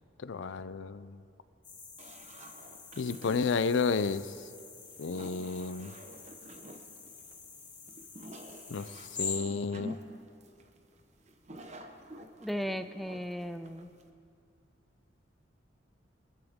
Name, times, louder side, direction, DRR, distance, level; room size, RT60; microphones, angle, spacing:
voice 1, 0.2-1.2 3.0-4.3 5.0-6.0 8.7-10.0, left 5 dB, 75° left, 15 dB, 0.5 m, -32 dB
sound 1, 1.6-9.4, left 5 dB, 25° left, 2.3 m, -45 dB
sound 2, 2.0-14.1, equal, 35° right, 0.9 m, -49 dB
voice 2, 12.4-13.9, equal, ahead, 9 dB, 0.4 m, -36 dB
23.5 x 14.0 x 3.7 m, 2.4 s
head